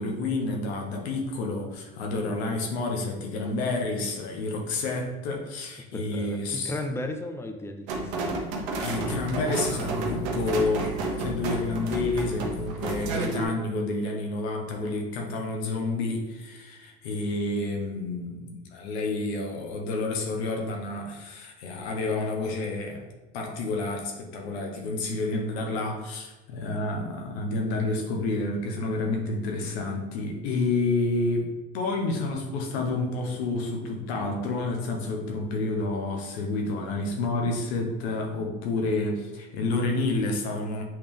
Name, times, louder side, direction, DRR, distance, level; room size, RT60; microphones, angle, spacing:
voice 1, 0.0-6.8 8.8-23.0 23.3-40.8, left 2 dB, 85° left, 2 dB, 1.3 m, -29 dB
voice 2, 5.9-6.4 6.6-8.5, left 1 dB, 10° left, 6 dB, 0.7 m, -35 dB
louise&joachim, 7.9-13.4, right 3 dB, 80° right, 1.2 m, -31 dB
7.7 x 3.6 x 3.5 m, 1.2 s
supercardioid pair, 90°, 31 cm